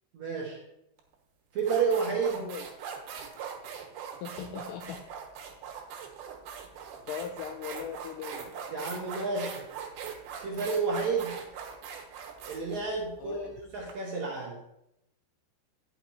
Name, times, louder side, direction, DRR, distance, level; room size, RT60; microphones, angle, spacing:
voice 1, 0.1-0.6 1.5-2.5 8.7-9.6 10.4-11.4 12.5-14.6, right 5 dB, 65° right, -2 dB, 1.9 m, -30 dB
sound 1, 1.0-1.1 1.6-13.9, right 7 dB, 80° right, 3.2 m, -41 dB
voice 2, 2.3-2.7 4.2-5.0 6.5-6.6 7.1-8.6 13.2-13.6, left 8 dB, 85° left, 5 dB, 1.9 m, -39 dB
10.0 x 6.0 x 4.1 m, 0.84 s
omnidirectional pair, 4.4 m